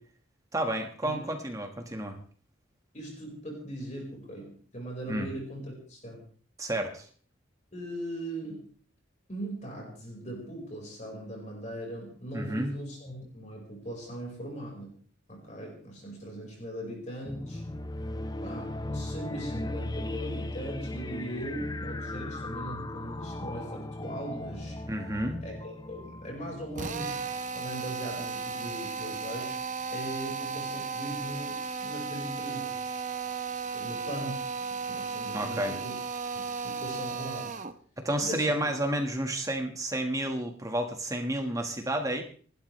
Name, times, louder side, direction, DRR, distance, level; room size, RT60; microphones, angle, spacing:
voice 1, 0.5-2.2 5.1-5.3 6.6-7.1 12.3-12.7 24.9-25.4 35.3-35.7 38.0-42.2, right 1 dB, 15° right, 4 dB, 1.6 m, -31 dB
voice 2, 2.9-6.2 7.7-8.7 9.3-14.9 15.3-17.6 18.4-24.8 25.4-27.2 27.5-29.6 29.9-32.8 33.7-34.5 34.9-36.0 36.3-37.6 38.2-38.6, right 1 dB, 35° left, -1 dB, 4.9 m, -39 dB
sound 1, 17.2-27.5, left 1 dB, 20° left, 0.6 m, -37 dB
Drill, 26.7-37.8, right 5 dB, 40° right, 0.9 m, -35 dB
28.5 x 12.0 x 3.3 m, 0.44 s
head